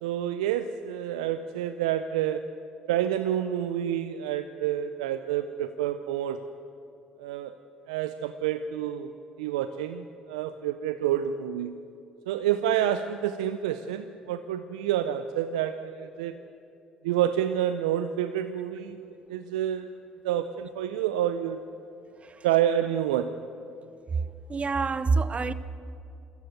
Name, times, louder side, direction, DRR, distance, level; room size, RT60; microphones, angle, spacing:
voice 1, 0.0-2.6 2.9-6.4 7.2-7.6 7.9-11.8 12.3-16.4 17.0-19.9 20.2-21.6 22.4-23.4, right 10 dB, 85° right, 0.5 m, -28 dB
voice 2, 24.5-25.5, right 4 dB, 35° right, 0.8 m, -26 dB
23.0 x 14.0 x 7.8 m
hypercardioid pair, 55°, 4 cm